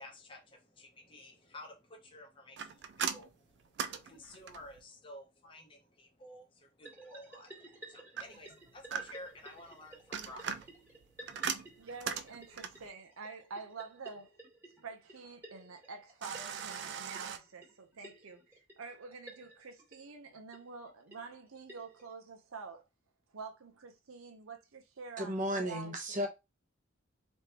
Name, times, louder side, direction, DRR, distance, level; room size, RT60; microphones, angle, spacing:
voice 1, 0.0-11.9, left 1 dB, 25° left, 0.7 m, -53 dB
sound 1, 2.6-4.8 8.2-9.4 9.9-12.9 16.2-17.4, right 7 dB, 55° right, 0.3 m, -39 dB
sound 2, 6.8-22.1, right 1 dB, 10° right, 1.2 m, -55 dB
voice 2, 11.8-14.3 14.8-22.8 23.3-26.3, right 4 dB, 85° right, 0.8 m, -47 dB
voice 3, 25.2-26.3, equal, 35° right, 0.9 m, -34 dB
3.4 x 3.2 x 2.8 m
head